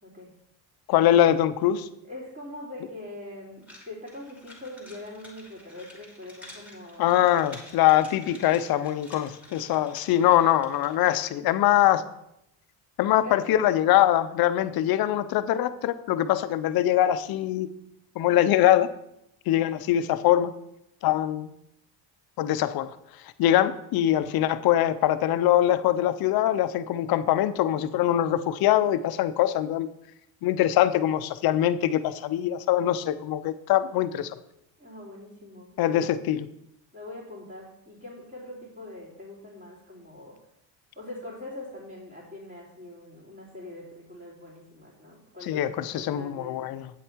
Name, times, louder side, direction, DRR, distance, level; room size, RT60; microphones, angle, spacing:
voice 1, 0.0-0.3 2.0-7.1 13.1-13.4 34.8-36.1 36.9-40.4 40.9-46.7, left 1 dB, 20° right, -9 dB, 3.2 m, -42 dB
voice 2, 0.9-1.9 7.0-12.0 13.0-17.7 18.2-18.9 19.5-20.5 21.0-21.5 22.4-22.9 23.4-29.9 30.4-34.4 35.8-36.5 45.5-46.9, left 12 dB, 55° left, 12 dB, 0.7 m, -23 dB
sound 1, 3.6-11.1, left 2 dB, 5° right, 2.8 m, -50 dB
8.5 x 7.8 x 4.5 m, 0.81 s
cardioid pair, 120°, 45 cm